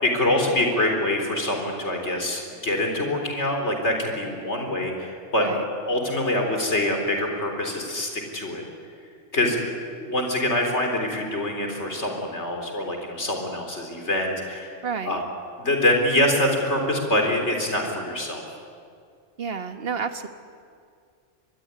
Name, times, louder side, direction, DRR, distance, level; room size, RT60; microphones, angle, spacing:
voice 1, 0.0-5.5 5.8-8.6 9.3-9.6 9.9-14.8 15.0-15.2 15.6-18.4, left 1 dB, 60° left, 3 dB, 4.4 m, -25 dB
voice 2, 14.8-15.2 19.4-20.3, right 6 dB, 50° right, 8 dB, 1.6 m, -30 dB
25.0 x 21.5 x 9.8 m, 2.3 s
omnidirectional pair, 1.3 m